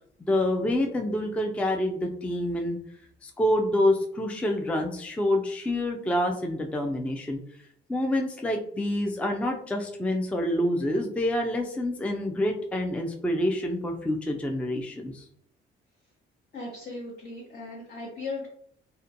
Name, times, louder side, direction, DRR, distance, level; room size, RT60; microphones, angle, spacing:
voice 1, 0.2-2.8 3.2-7.4 7.9-15.2, left 1 dB, 5° left, 3 dB, 0.3 m, -27 dB
voice 2, 16.5-18.5, left 3 dB, 50° left, -6 dB, 1.0 m, -37 dB
2.4 x 2.1 x 2.7 m, 0.64 s
cardioid pair, 90°, 20 cm